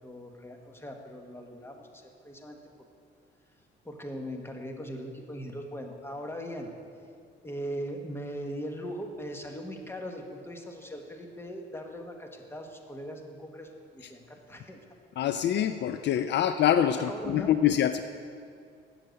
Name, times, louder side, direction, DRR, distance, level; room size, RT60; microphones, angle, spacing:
voice 1, 0.0-2.9 3.8-6.7 7.4-14.8 16.9-17.5, equal, 10° left, 3 dB, 1.2 m, -40 dB
voice 2, 15.2-18.0, left 10 dB, 60° left, 10 dB, 0.4 m, -25 dB
7.6 x 6.7 x 7.7 m, 2.3 s
cardioid pair, 90°, 20 cm